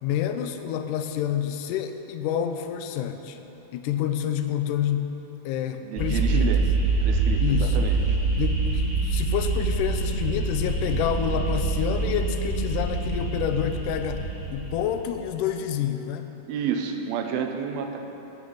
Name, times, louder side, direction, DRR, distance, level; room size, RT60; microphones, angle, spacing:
voice 1, 0.0-3.4 3.7-5.1 5.5-6.6 7.4-7.8 8.4-16.3, left 9 dB, 80° left, 7 dB, 1.9 m, -28 dB
voice 2, 5.8-6.6 7.0-8.2 16.5-18.0, right 7 dB, 90° right, 5 dB, 2.7 m, -30 dB
sound 1, 5.9-15.2, right 3 dB, 25° left, 3.2 m, -25 dB
9.7 x 8.6 x 7.1 m, 3.0 s
omnidirectional pair, 4.2 m